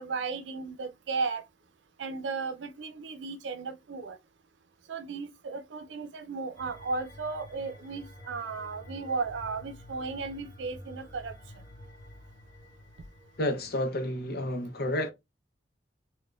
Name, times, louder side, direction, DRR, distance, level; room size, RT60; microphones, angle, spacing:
voice 1, 0.0-1.4 2.0-4.2 4.9-11.3, right 4 dB, 85° right, 0.5 m, -35 dB
sound 1, 6.5-13.9, left 1 dB, 20° left, 1.0 m, -49 dB
voice 2, 13.4-15.1, left 1 dB, 60° left, 0.6 m, -30 dB
4.0 x 2.2 x 2.3 m
head